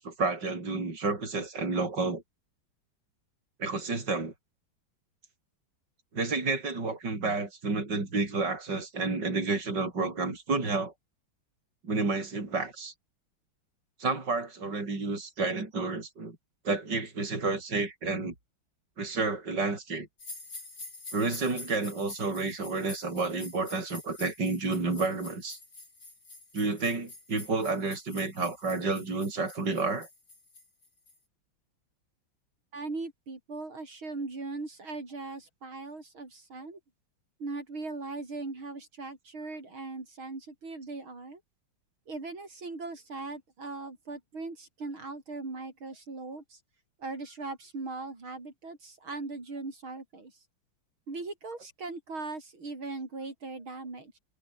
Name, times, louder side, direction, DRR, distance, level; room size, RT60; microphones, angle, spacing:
voice 1, 0.0-2.2 3.6-4.3 6.1-10.9 11.8-12.9 14.0-16.4 16.6-18.3 19.0-20.1 21.1-25.6 26.5-30.1, right 3 dB, 55° right, 5.7 m, -30 dB
sound 1, 20.2-31.2, left 3 dB, 65° left, 8.1 m, -47 dB
voice 2, 32.7-36.8 37.4-41.4 42.1-46.6 47.0-50.4 51.1-54.2, right 3 dB, 85° right, 6.4 m, -39 dB
omnidirectional pair, 2.2 m